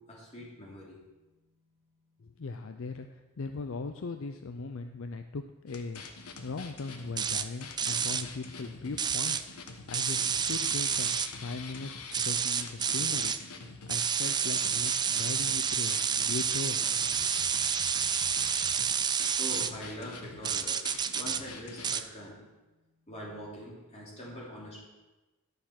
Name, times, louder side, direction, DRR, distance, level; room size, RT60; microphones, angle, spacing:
voice 1, 0.1-1.0 19.4-20.7 21.1-22.4 23.1-24.8, equal, 30° left, -4 dB, 3.0 m, -43 dB
voice 2, 2.2-6.0 6.4-9.4 9.6-13.4 13.9-16.8 17.2-17.3, left 3 dB, 60° left, 7 dB, 0.5 m, -39 dB
sound 1, 5.7-22.0, left 4 dB, 85° left, 1.2 m, -45 dB
sound 2, 7.2-7.5 7.8-8.2 9.0-9.4 9.9-11.3 12.1-13.4 13.9-19.7 20.5-21.4 21.8-22.0, right 7 dB, 20° right, 0.3 m, -29 dB
11.5 x 6.7 x 5.8 m, 1.1 s
head